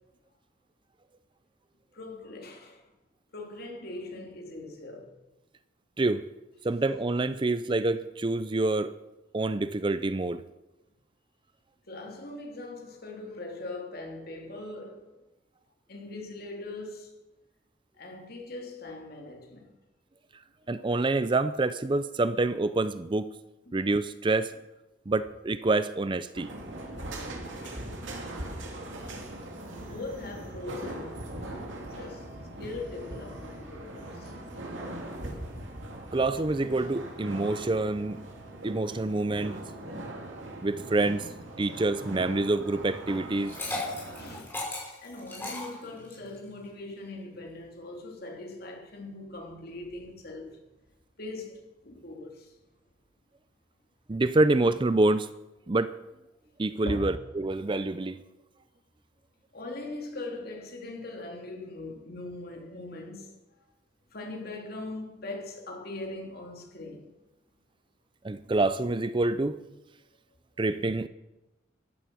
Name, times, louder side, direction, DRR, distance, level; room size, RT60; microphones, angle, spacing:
voice 1, 1.9-2.8 3.3-5.1 11.9-15.1 15.9-17.1 18.0-19.7 23.6-23.8 27.6-27.9 29.7-32.3 32.6-34.6 44.1-44.6 45.0-50.6 51.2-52.6 56.8-57.2 59.5-63.4 64.1-67.1, left 2 dB, 50° left, 3.1 m, -41 dB
voice 2, 6.6-8.9 9.3-10.4 20.7-23.3 23.7-24.5 25.1-26.5 36.1-38.2 38.6-39.6 40.6-41.3 41.6-43.5 54.1-55.3 55.7-55.9 56.6-58.2 68.2-69.6 70.6-71.1, right 2 dB, 25° right, 0.5 m, -27 dB
sound 1, 26.3-44.4, right 1 dB, 80° right, 2.8 m, -40 dB
Liquid, 43.3-46.3, left 2 dB, 10° left, 5.6 m, -36 dB
15.0 x 11.5 x 6.2 m
head